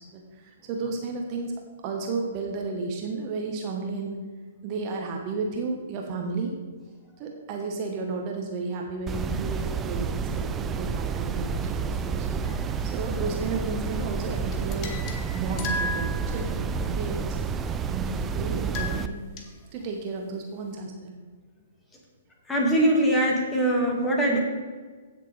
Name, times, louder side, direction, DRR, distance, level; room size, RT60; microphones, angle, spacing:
voice 1, 0.0-1.5 1.8-4.2 4.6-6.5 7.2-14.9 15.3-17.6 17.9-21.2, right 4 dB, 35° right, 2 dB, 1.3 m, -33 dB
sound 1, 9.1-19.1, right 5 dB, 15° right, 0.4 m, -30 dB
sound 2, 12.4-13.1 14.5-16.8 18.6-19.4, left 2 dB, 30° left, 1.2 m, -35 dB
voice 2, 22.5-24.4, right 1 dB, 10° left, -1 dB, 2.1 m, -22 dB
16.0 x 6.7 x 3.4 m, 1.4 s
figure-of-eight pair, 120°, 0 cm